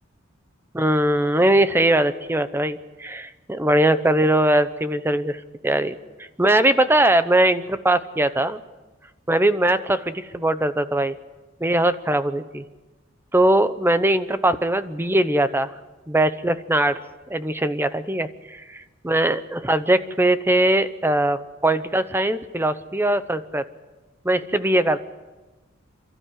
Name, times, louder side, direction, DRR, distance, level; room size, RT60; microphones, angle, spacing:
voice 1, 0.7-5.4 5.6-5.9 6.4-8.6 9.3-11.2 11.6-12.6 13.3-15.7 16.1-17.0 17.3-23.6 24.2-25.0, right 1 dB, 10° right, 12 dB, 0.9 m, -21 dB
28.5 x 13.0 x 9.3 m, 1.2 s
head